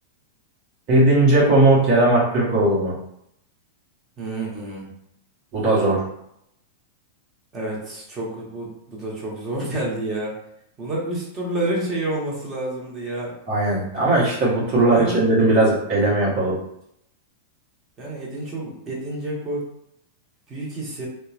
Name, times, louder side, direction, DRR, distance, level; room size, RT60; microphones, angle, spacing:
voice 1, 0.9-2.9 5.5-6.0 13.5-16.6, right 2 dB, 45° right, -6 dB, 1.1 m, -18 dB
voice 2, 4.2-4.9 7.5-10.4 10.8-13.3 14.8-15.3 18.0-19.7 20.5-21.1, right 1 dB, 30° right, -4 dB, 1.1 m, -29 dB
2.7 x 2.2 x 2.4 m, 0.76 s
hypercardioid pair, 110°, 0 cm